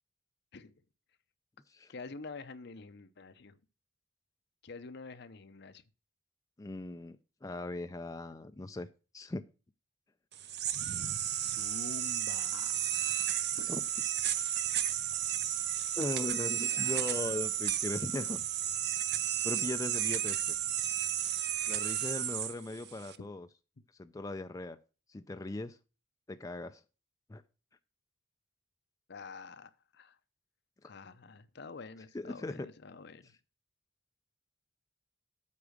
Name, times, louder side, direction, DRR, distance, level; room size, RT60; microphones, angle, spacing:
voice 1, 1.9-3.6 4.6-5.8 11.4-13.7 14.4-14.6 16.7-17.3 29.1-30.2 30.8-33.3, left 4 dB, 60° left, 0.7 m, -48 dB
voice 2, 6.6-7.2 7.4-8.9 9.1-9.4 13.6-13.8 16.0-18.4 19.4-20.6 21.7-23.5 24.0-24.8 25.1-25.8 26.3-26.8 27.3-27.4 30.8-30.9 32.1-32.7, left 2 dB, 15° left, 0.4 m, -38 dB
sound 1, 10.3-23.2, right 10 dB, 55° right, 0.7 m, -33 dB
8.5 x 4.8 x 6.4 m
head